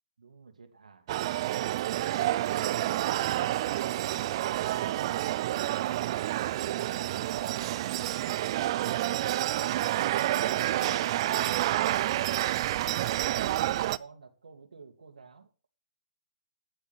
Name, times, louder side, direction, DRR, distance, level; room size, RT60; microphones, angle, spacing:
voice 1, 0.2-1.2 10.1-12.5 13.3-15.5, right 5 dB, 90° right, 2.4 m, -49 dB
sound 1, 1.1-14.0, right 14 dB, 45° right, 0.5 m, -29 dB
10.0 x 8.3 x 6.1 m
hypercardioid pair, 140°, 4 cm